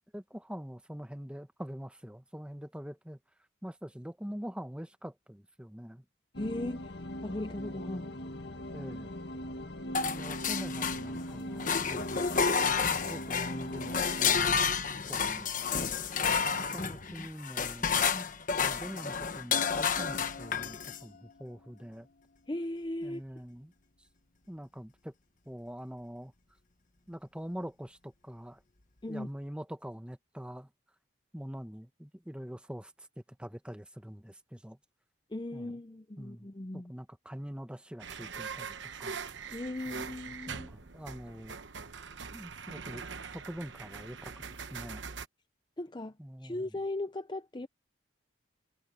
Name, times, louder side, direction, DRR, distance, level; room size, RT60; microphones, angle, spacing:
voice 1, 0.1-3.2 3.6-6.0 8.7-9.1 9.9-12.2 12.8-14.7 15.1-15.9 16.7-18.0 18.5-22.1 23.0-23.7 24.5-25.1 25.5-26.3 27.1-28.6 29.1-30.7 31.3-33.1 33.4-34.8 35.5-35.7 36.2-36.5 36.7-38.7 39.0-39.2 39.9-40.0 40.5-41.6 42.3-45.0 46.2-46.7, equal, 5° right, 1.1 m, -44 dB
sound 1, 6.3-14.3, left 1 dB, 55° left, 2.1 m, -40 dB
voice 2, 6.4-6.9 7.2-8.2 16.8-16.9 17.2-17.3 18.0-18.3 22.5-23.2 29.0-29.3 35.3-36.9 39.5-40.7 45.8-46.1 46.4-47.7, left 1 dB, 20° left, 0.6 m, -38 dB
sound 2, 9.9-11.3 11.6-21.0, left 6 dB, 40° left, 1.2 m, -30 dB
sound 3, 38.0-45.3, right 5 dB, 65° right, 1.0 m, -42 dB
head